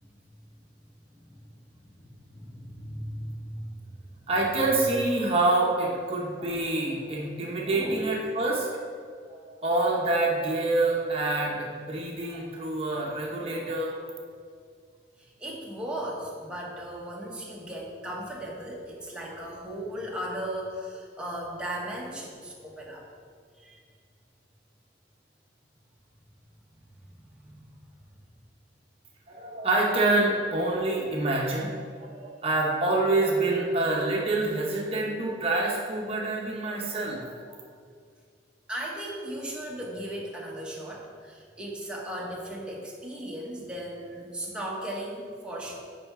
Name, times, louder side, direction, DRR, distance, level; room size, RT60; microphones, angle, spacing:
voice 1, 1.9-4.3 7.7-8.0 15.2-23.0 23.5-23.8 27.3-27.6 38.7-45.7, right 1 dB, 5° right, -4 dB, 1.1 m, -37 dB
voice 2, 4.3-8.7 9.3-13.9 29.3-37.2 37.5-37.6, right 2 dB, 30° right, -2 dB, 0.9 m, -26 dB
8.7 x 5.6 x 3.6 m, 2.1 s
head